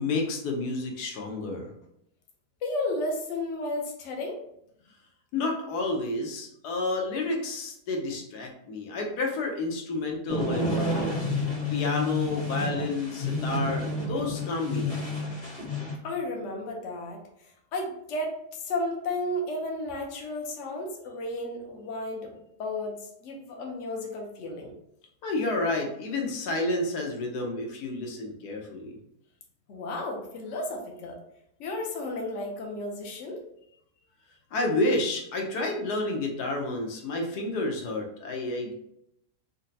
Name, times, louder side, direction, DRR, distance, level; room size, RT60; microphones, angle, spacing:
voice 1, 0.0-1.7 5.3-11.2 11.7-15.1 25.2-29.0 34.5-38.7, left 2 dB, 80° left, 1 dB, 1.2 m, -30 dB
voice 2, 2.6-4.4 16.0-17.2 17.7-24.7 29.7-31.2 31.6-33.4, left 1 dB, 60° left, 1 dB, 0.9 m, -33 dB
sound 1, 10.3-16.0, left 2 dB, 30° left, 0.8 m, -30 dB
3.9 x 2.1 x 2.6 m, 0.76 s
omnidirectional pair, 1.7 m